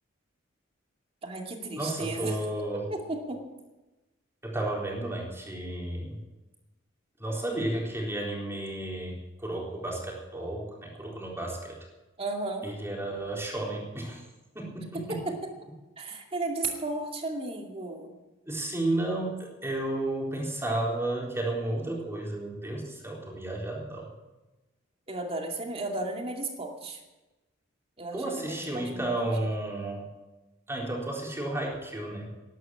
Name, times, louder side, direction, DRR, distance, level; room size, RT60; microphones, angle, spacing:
voice 1, 1.2-2.4 2.9-3.4 12.2-12.7 14.9-15.4 16.0-18.1 25.1-27.0 28.0-29.2, right 2 dB, 30° right, 2 dB, 2.3 m, -34 dB
voice 2, 1.8-2.8 4.4-6.2 7.2-11.8 12.6-14.2 14.5-15.2 18.5-24.1 28.1-30.0 30.7-32.3, right 1 dB, 15° right, -2 dB, 3.9 m, -32 dB
12.5 x 11.0 x 8.8 m, 1.1 s
head